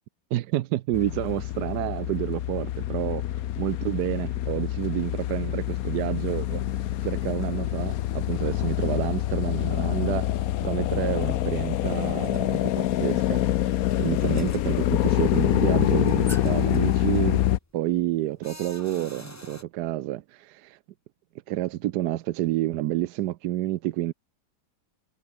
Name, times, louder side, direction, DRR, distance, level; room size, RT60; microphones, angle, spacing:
voice 1, 0.3-6.6 7.0-13.7 14.0-17.4 17.7-20.8 21.5-24.1, right 14 dB, 70° right, 1.0 m, -29 dB
sound 1, 0.9-17.6, left 13 dB, 80° left, 0.8 m, -26 dB
sound 2, 12.0-19.6, left 1 dB, 10° left, 2.2 m, -47 dB
omnidirectional pair, 2.3 m